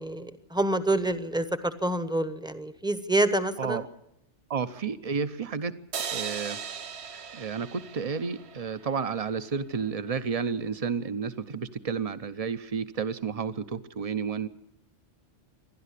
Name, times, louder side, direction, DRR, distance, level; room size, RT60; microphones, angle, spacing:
voice 1, 0.0-3.8, right 1 dB, 5° right, 11 dB, 0.9 m, -27 dB
voice 2, 4.5-5.8 6.1-6.6 7.3-14.5, right 6 dB, 35° right, 12 dB, 0.9 m, -31 dB
sound 1, 5.9-9.2, right 7 dB, 65° right, 1.2 m, -38 dB
27.5 x 11.5 x 8.4 m, 0.80 s
omnidirectional pair, 1.2 m